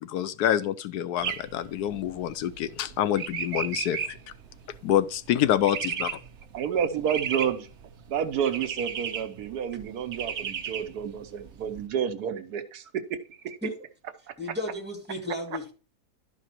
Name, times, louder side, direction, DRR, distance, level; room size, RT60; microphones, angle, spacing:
voice 1, 0.0-4.2 4.8-6.2, left 11 dB, 85° left, 1.2 m, -27 dB
sound 1, 1.2-11.8, right 7 dB, 55° right, 1.1 m, -36 dB
voice 2, 6.5-7.7 8.1-13.6 14.3-14.4, right 8 dB, 80° right, 1.4 m, -30 dB
voice 3, 14.4-15.7, left 1 dB, 5° right, 2.3 m, -33 dB
12.0 x 5.0 x 4.4 m
omnidirectional pair, 1.6 m